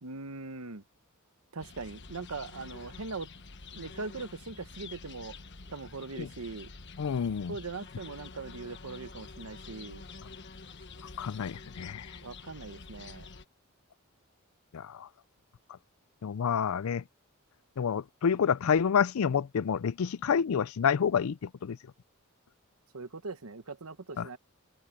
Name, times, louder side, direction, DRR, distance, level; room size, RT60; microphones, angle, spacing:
voice 1, 0.0-0.8 1.5-3.3 3.7-5.4 5.7-6.7 7.5-10.1 12.2-13.3 22.9-24.4, right 3 dB, 85° right, 1.2 m, -41 dB
sound 1, 1.6-13.5, left 4 dB, 55° left, 1.3 m, -48 dB
voice 2, 7.0-7.5 11.2-12.1 14.7-15.1 16.2-17.0 17.8-21.8 24.2-24.3, left 7 dB, 75° left, 0.4 m, -28 dB
head